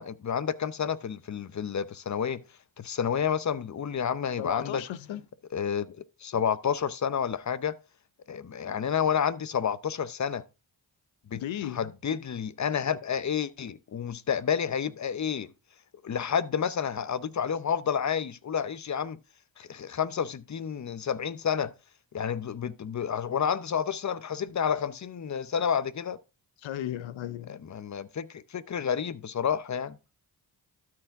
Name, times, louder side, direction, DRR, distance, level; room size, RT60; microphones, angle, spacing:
voice 1, 0.0-2.4 2.8-4.8 5.5-7.7 8.3-10.4 11.3-15.5 16.0-19.2 19.6-21.7 22.1-26.2 27.5-30.0, left 7 dB, 40° left, 0.7 m, -30 dB
voice 2, 4.4-5.2 11.4-11.9 26.6-27.6, left 11 dB, 75° left, 0.8 m, -35 dB
12.5 x 4.8 x 3.5 m
supercardioid pair, 50°, 46 cm